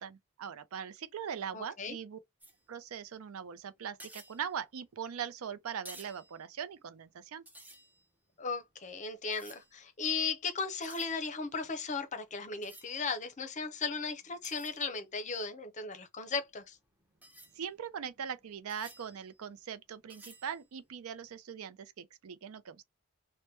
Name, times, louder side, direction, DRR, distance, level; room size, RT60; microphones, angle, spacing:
voice 1, 0.0-2.2 2.7-7.4 17.6-22.8, right 7 dB, 75° right, 0.4 m, -41 dB
voice 2, 1.5-2.0 8.4-16.8, left 4 dB, 35° left, 0.6 m, -36 dB
sound 1, 2.4-3.1 3.5-3.6 3.9-5.3 5.7-7.2 7.5-10.1 10.5-15.4 16.3-21.4, right 1 dB, 10° right, 0.7 m, -56 dB
3.0 x 2.1 x 3.1 m
head